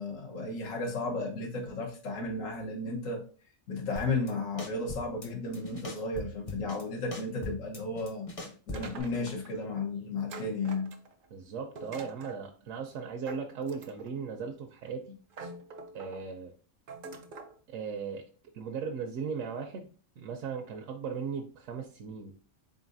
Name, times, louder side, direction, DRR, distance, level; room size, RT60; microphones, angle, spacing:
voice 1, 0.0-3.2 3.7-8.3 8.7-10.9, left 3 dB, 80° left, 1.4 m, -34 dB
sound 1, 4.0-4.3 4.6-5.3 5.5-6.8 7.1-9.0, left 1 dB, 35° left, 0.7 m, -40 dB
sound 2, 8.7-9.5 10.3-11.3 11.8-12.4 13.3-14.2 14.9-15.0 15.3-16.2 16.9-17.5, right 3 dB, 55° right, 0.6 m, -45 dB
voice 2, 11.3-15.2 15.9-16.5 17.7-18.2 18.5-19.9 20.2-22.3, right 6 dB, 75° right, 0.9 m, -37 dB
3.9 x 3.8 x 2.5 m
omnidirectional pair, 1.4 m